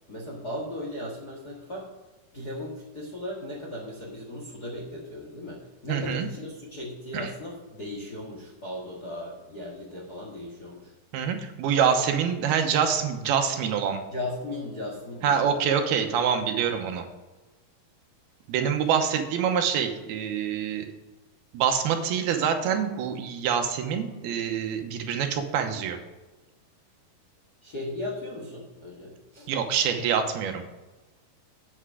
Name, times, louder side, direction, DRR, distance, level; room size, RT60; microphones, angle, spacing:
voice 1, 0.1-1.9 2.3-10.9 14.1-15.5 27.6-29.5, left 1 dB, 45° left, -3 dB, 1.2 m, -37 dB
voice 2, 5.9-6.3 7.1-7.3 11.1-14.0 15.2-17.1 18.5-20.9 21.5-26.0 29.5-30.6, right 7 dB, 80° right, 5 dB, 2.8 m, -26 dB
8.7 x 8.1 x 4.8 m, 1.2 s
omnidirectional pair, 4.5 m